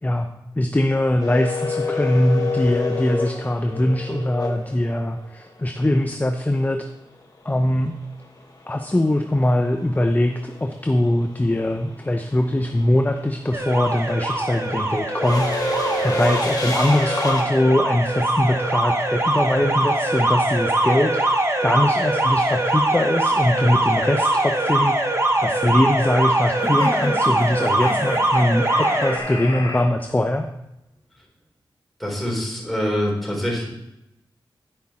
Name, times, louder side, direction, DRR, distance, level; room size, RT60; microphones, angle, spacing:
voice 1, 0.0-6.9 7.4-8.0 8.7-15.8 16.0-21.3 21.6-30.5, left 1 dB, 20° left, 6 dB, 0.7 m, -22 dB
sound 1, 1.2-5.3 7.7-7.8 9.1-9.4 9.6-17.4, left 2 dB, 45° left, 1.7 m, -27 dB
Alarm, 13.5-29.2, right 1 dB, 30° right, 1.2 m, -22 dB
sound 2, 26.6-29.8, left 2 dB, 80° left, 2.0 m, -31 dB
voice 2, 32.0-33.7, equal, ahead, -3 dB, 3.8 m, -25 dB
10.5 x 5.2 x 4.3 m, 0.87 s
cardioid pair, 45°, 9 cm